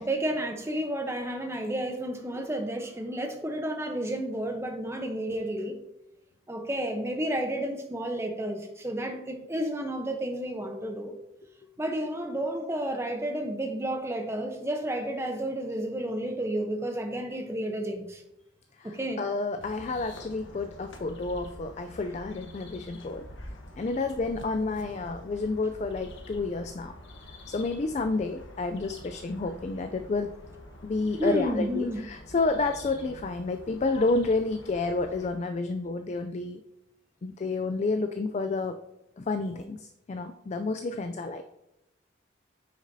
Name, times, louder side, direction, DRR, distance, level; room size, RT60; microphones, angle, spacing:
voice 1, 0.0-5.8 6.5-11.1 11.8-18.2 18.8-19.2 31.2-32.0, right 1 dB, 15° right, 4 dB, 0.8 m, -31 dB
voice 2, 18.8-23.3 23.8-26.9 27.5-30.3 30.8-36.6 37.2-38.8 39.2-41.4, left 3 dB, 35° left, 7 dB, 0.3 m, -30 dB
sound 1, 19.6-35.3, left 1 dB, 70° left, 1.2 m, -47 dB
9.0 x 6.2 x 2.7 m, 0.88 s
head